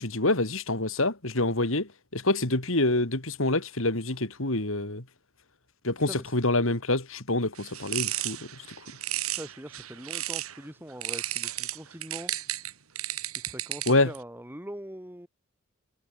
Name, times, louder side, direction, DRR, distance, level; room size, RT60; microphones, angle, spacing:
voice 1, 0.0-5.0 5.8-8.4 13.9-14.1, left 2 dB, 65° left, 3.6 m, -26 dB
sound 1, 7.6-10.6 11.0-14.2, right 14 dB, 90° right, 2.7 m, -33 dB
voice 2, 9.4-12.3 13.3-15.3, equal, 10° right, 4.9 m, -42 dB
head